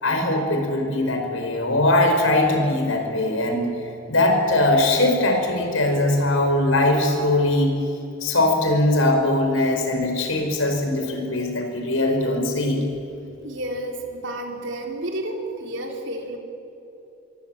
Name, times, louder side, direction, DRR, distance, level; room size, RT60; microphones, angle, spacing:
voice 1, 0.0-3.7 4.1-7.8 8.2-12.8, left 1 dB, 80° left, 4 dB, 5.1 m, -21 dB
voice 2, 13.4-16.4, right 1 dB, 65° right, 2 dB, 4.0 m, -31 dB
26.0 x 23.0 x 8.9 m, 2.8 s
head